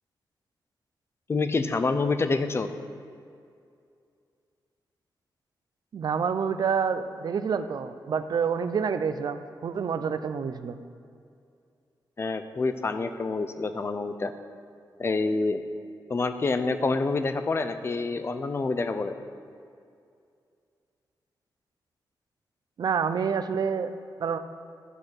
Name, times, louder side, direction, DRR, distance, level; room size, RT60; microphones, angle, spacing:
voice 1, 1.3-2.7 12.2-14.3 15.0-15.6 16.1-19.2, left 3 dB, 35° left, 10 dB, 0.5 m, -27 dB
voice 2, 5.9-10.8 22.8-23.9 24.2-24.4, right 6 dB, 60° right, 11 dB, 0.5 m, -28 dB
11.0 x 4.2 x 6.5 m, 2.4 s
wide cardioid pair, 115°, 8 cm